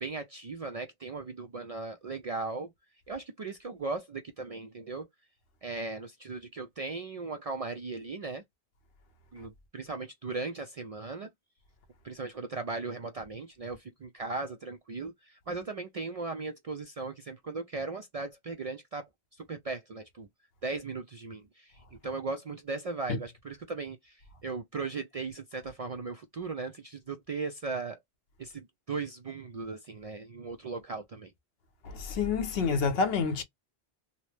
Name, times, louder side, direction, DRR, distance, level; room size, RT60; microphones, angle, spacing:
voice 1, 0.0-2.7 3.1-5.1 5.6-8.4 9.3-11.3 12.0-20.3 20.6-28.0 28.4-31.3, right 3 dB, 55° right, 0.4 m, -37 dB
voice 2, 31.8-33.4, left 5 dB, 70° left, 0.9 m, -28 dB
2.8 x 2.0 x 3.1 m
omnidirectional pair, 1.1 m